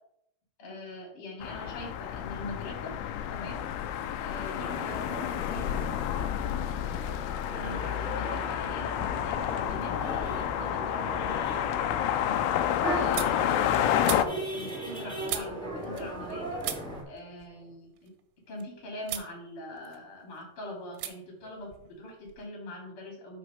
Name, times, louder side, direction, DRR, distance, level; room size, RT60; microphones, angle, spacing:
voice 1, 0.6-2.9 3.3-3.6 4.2-5.9 7.5-12.4 12.9-16.6 17.1-18.1 18.5-23.4, left 1 dB, 35° left, -1 dB, 2.7 m, -42 dB
sound 1, 1.4-14.2, left 10 dB, 80° left, 2.4 m, -30 dB
sound 2, 4.4-17.0, right 1 dB, 5° left, 0.6 m, -39 dB
sound 3, 12.3-16.3 16.6-18.6 19.0-19.3 19.7-20.4 20.9-21.1 21.4-22.5, right 12 dB, 85° right, 3.1 m, -41 dB
6.3 x 5.9 x 5.5 m, 0.76 s
omnidirectional pair, 5.1 m